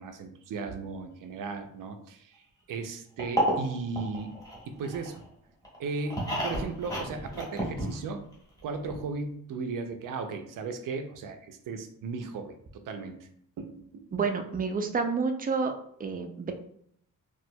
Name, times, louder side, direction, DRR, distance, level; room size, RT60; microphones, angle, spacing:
voice 1, 0.0-4.4 4.7-5.2 5.8-8.3 8.6-13.3 13.6-14.0, right 4 dB, 70° right, 7 dB, 0.6 m, -36 dB
sound 1, 3.2-5.2 5.6-8.3 8.6-8.7 8.9-9.0, right 1 dB, 10° left, 1.2 m, -31 dB
voice 2, 14.1-15.7 16.0-16.5, right 5 dB, 25° right, 6 dB, 0.4 m, -29 dB
4.4 x 2.4 x 2.2 m, 0.67 s
cardioid pair, 115°, 33 cm